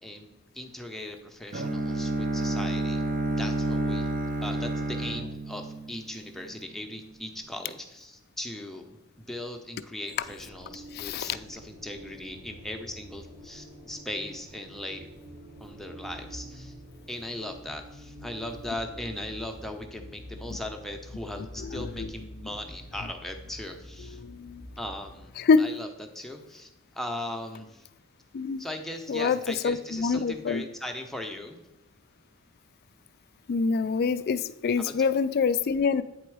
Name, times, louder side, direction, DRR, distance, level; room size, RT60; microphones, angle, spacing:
voice 1, 0.0-3.0 3.4-4.1 4.4-15.1 15.6-16.7 17.1-24.2 24.8-25.3 25.6-27.9 28.6-31.6 34.8-35.1, left 1 dB, ahead, 3 dB, 0.6 m, -38 dB
Bowed string instrument, 1.5-6.5, right 2 dB, 35° right, 0.6 m, -29 dB
sound 1, 10.1-25.2, equal, 80° right, 2.8 m, -46 dB
voice 2, 10.9-11.4 21.6-22.1 24.2-24.7 25.4-25.6 28.3-28.6 29.1-29.4 29.6-30.6 33.5-36.0, left 5 dB, 45° left, 14 dB, 0.3 m, -25 dB
8.6 x 4.0 x 4.7 m, 0.94 s
head